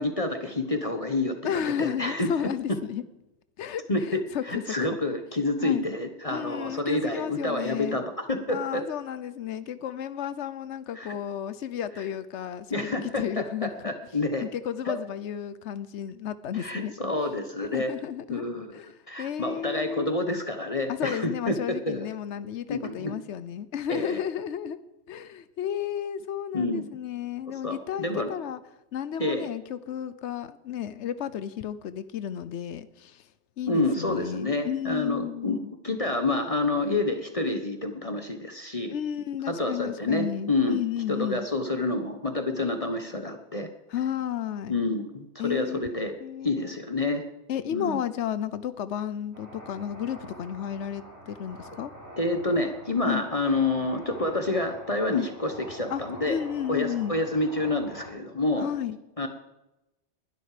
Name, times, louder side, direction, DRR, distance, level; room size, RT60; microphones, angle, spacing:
voice 1, 0.0-2.8 3.9-8.8 10.9-11.1 12.7-14.5 14.8-15.0 16.5-17.9 18.3-18.8 19.1-22.1 22.7-23.1 23.9-24.2 26.5-26.9 27.6-28.3 29.2-29.5 33.7-38.9 39.5-40.8 41.1-43.7 44.7-46.2 46.4-47.2 47.7-48.0 52.2-56.4 56.7-58.7 59.2-59.3, left 2 dB, 30° left, 6 dB, 1.2 m, -28 dB
voice 2, 1.4-3.0 3.6-4.9 5.6-5.9 6.3-8.0 8.5-13.9 14.4-16.9 17.7-18.4 18.7-18.9 19.2-20.2 20.9-24.8 25.1-28.6 28.9-33.2 33.6-35.7 38.9-41.5 43.9-44.7 45.4-45.9 46.2-46.8 47.5-51.9 53.1-53.2 55.1-55.3 55.9-57.2 58.6-59.0, left 9 dB, 85° left, 14 dB, 1.1 m, -33 dB
sound 1, 49.3-58.1, right 1 dB, 70° right, 5.1 m, -46 dB
20.5 x 12.5 x 5.0 m, 0.96 s
omnidirectional pair, 1.2 m